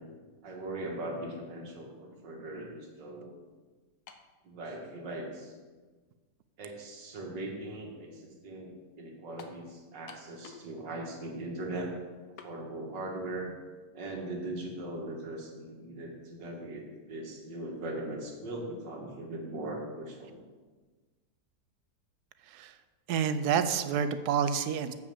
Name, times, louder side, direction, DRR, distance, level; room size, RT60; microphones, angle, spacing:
voice 1, 0.4-3.3 4.4-5.5 6.6-12.0 12.3-13.5 13.9-20.4, right 1 dB, 90° right, 1 dB, 2.2 m, -40 dB
sound 1, 4.1-4.4 5.2-5.3 9.4-9.6 10.1-10.7 11.0-11.1 12.4-12.6, left 6 dB, 70° left, 1.3 m, -49 dB
voice 2, 22.4-22.8 23.1-24.9, right 7 dB, 75° right, 11 dB, 1.0 m, -29 dB
7.8 x 5.8 x 6.8 m, 1.3 s
omnidirectional pair, 1.8 m